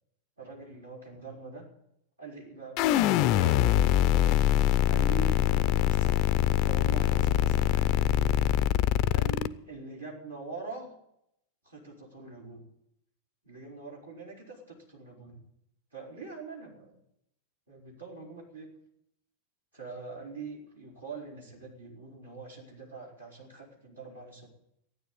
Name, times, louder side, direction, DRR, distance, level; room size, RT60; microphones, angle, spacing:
voice 1, 0.4-1.6 2.2-6.3 6.6-8.4 9.1-10.9 11.6-12.6 13.4-15.4 15.9-17.0 17.7-18.7 19.7-24.5, right 4 dB, 80° right, -3 dB, 4.6 m, -44 dB
sound 1, 2.8-9.5, left 12 dB, 40° left, 0.5 m, -24 dB
14.0 x 9.6 x 8.7 m, 0.80 s
figure-of-eight pair, 90°, 0 cm